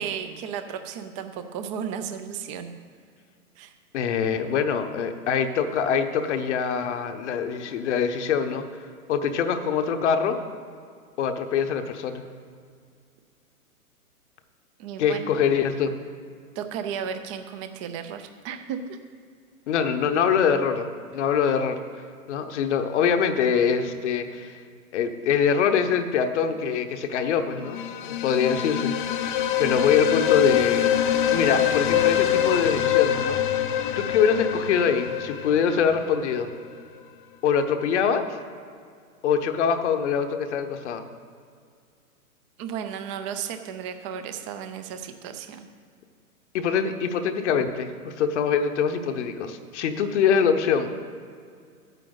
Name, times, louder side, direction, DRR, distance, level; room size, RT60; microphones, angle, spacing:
voice 1, 0.0-2.7 3.6-3.7 14.8-15.3 16.6-19.0 42.6-45.7, right 8 dB, 20° right, 8 dB, 0.5 m, -34 dB
voice 2, 3.9-8.6 9.1-10.4 11.2-12.2 15.0-15.9 19.7-20.9 21.1-21.8 22.3-24.6 24.9-30.9 31.3-33.4 34.0-36.5 37.4-38.2 39.2-41.0 46.5-51.0, left 7 dB, 50° left, 7 dB, 0.9 m, -24 dB
sound 1, 27.6-36.4, left 10 dB, 35° left, 0.5 m, -24 dB
13.0 x 9.1 x 3.9 m, 2.2 s
hypercardioid pair, 130°, 44 cm